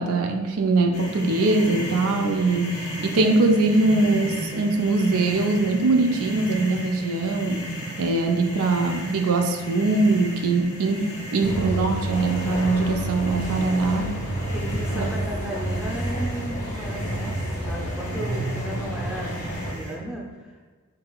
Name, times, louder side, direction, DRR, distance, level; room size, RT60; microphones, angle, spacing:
voice 1, 0.0-7.7 8.0-11.0 11.3-14.1 15.0-15.1, right 3 dB, 70° right, 3 dB, 0.4 m, -22 dB
sound 1, 0.9-19.9, equal, 90° left, 1.3 m, -36 dB
sound 2, 11.4-19.7, right 1 dB, 35° left, 0.8 m, -29 dB
voice 2, 14.5-20.5, right 1 dB, 5° right, -2 dB, 0.5 m, -35 dB
4.7 x 3.7 x 2.3 m, 1.4 s
head